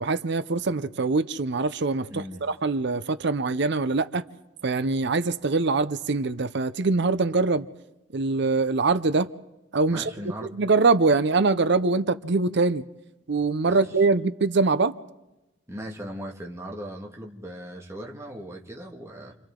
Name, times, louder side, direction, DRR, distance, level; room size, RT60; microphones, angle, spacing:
voice 1, 0.0-4.2 4.6-7.7 8.1-9.3 9.7-10.1 10.4-12.8 13.3-14.9, right 3 dB, 65° right, 0.7 m, -23 dB
voice 2, 2.1-2.4 9.9-10.5 13.7-13.9 15.7-19.3, equal, 15° right, 2.0 m, -38 dB
29.5 x 25.5 x 3.8 m
head